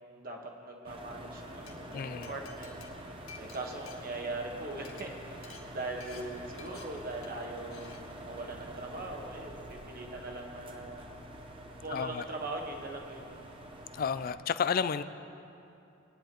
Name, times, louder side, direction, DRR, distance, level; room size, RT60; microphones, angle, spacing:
voice 1, 0.0-11.1 11.8-13.3, right 2 dB, 45° right, 1 dB, 1.3 m, -41 dB
sound 1, 0.8-14.3, right 1 dB, 25° right, 0.8 m, -46 dB
Glass, 1.7-1.8 2.2-4.5 4.8-5.0 5.4-5.6 6.0-6.2 6.6-6.8 7.2-7.4 7.7-8.0, left 6 dB, 80° left, 1.5 m, -51 dB
voice 2, 1.9-2.3 11.9-12.2 13.9-15.0, left 6 dB, 45° left, 13 dB, 0.3 m, -31 dB
21.0 x 10.0 x 3.0 m, 2.7 s
head